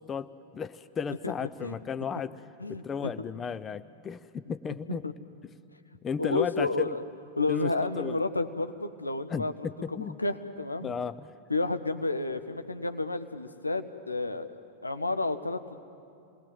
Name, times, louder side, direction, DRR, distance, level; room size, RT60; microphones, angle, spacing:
voice 1, 0.0-2.4 2.7-5.0 6.0-6.9 7.5-7.7 8.0-8.2 9.3-10.2 10.8-11.3, left 6 dB, 20° left, 14 dB, 0.5 m, -34 dB
voice 2, 1.2-1.8 2.6-3.1 4.9-5.1 6.2-7.0 7.4-10.9 11.5-15.8, left 3 dB, 80° left, 9 dB, 0.9 m, -31 dB
28.0 x 20.5 x 7.7 m, 2.7 s
figure-of-eight pair, 90°, 0 cm